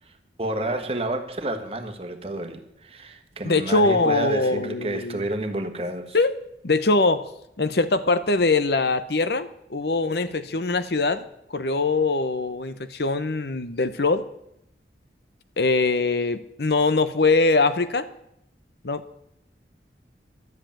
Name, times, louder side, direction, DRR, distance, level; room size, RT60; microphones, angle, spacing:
voice 1, 0.4-6.2, right 1 dB, 35° right, 6 dB, 1.4 m, -30 dB
voice 2, 3.4-5.2 6.1-6.3 6.6-7.3 7.6-14.3 15.6-18.1 18.8-19.0, left 3 dB, 65° left, 12 dB, 0.9 m, -22 dB
12.5 x 8.0 x 8.8 m, 0.77 s
head